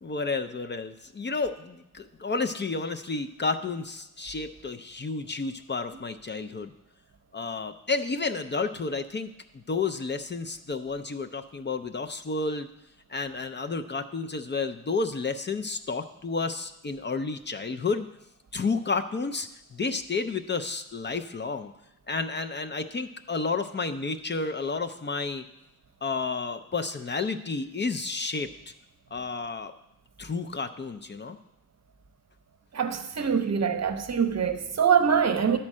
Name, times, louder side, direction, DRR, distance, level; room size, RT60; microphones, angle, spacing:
voice 1, 0.0-6.7 7.3-12.7 13.1-18.1 18.5-21.7 22.1-25.4 26.0-28.7 29.1-29.7 30.2-31.4, left 4 dB, 35° left, 0.4 m, -31 dB
voice 2, 32.7-35.6, right 7 dB, 55° right, 0.7 m, -24 dB
10.5 x 4.4 x 7.3 m
wide cardioid pair, 170°, 32 cm